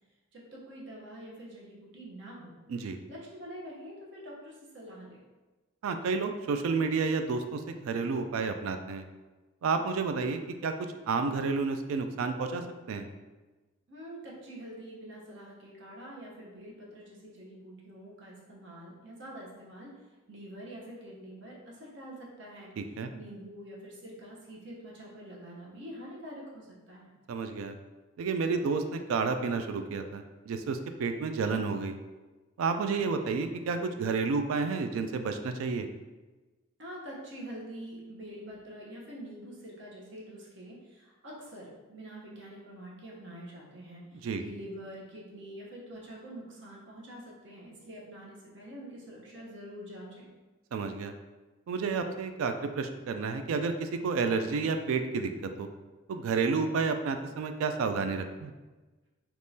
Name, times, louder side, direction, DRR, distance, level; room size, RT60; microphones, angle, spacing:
voice 1, 0.3-2.5 3.1-5.2 13.9-20.0 20.3-22.7 23.1-27.1 36.8-50.3, right 1 dB, 60° right, -3 dB, 0.8 m, -46 dB
voice 2, 5.8-9.0 9.6-10.7 11.1-12.6 12.9-13.1 22.8-23.1 27.3-27.8 28.2-32.0 32.6-35.9 44.2-44.4 50.7-51.1 51.7-55.7 56.1-58.5, right 4 dB, 80° right, 7 dB, 0.3 m, -30 dB
3.6 x 3.0 x 2.7 m, 1.2 s
head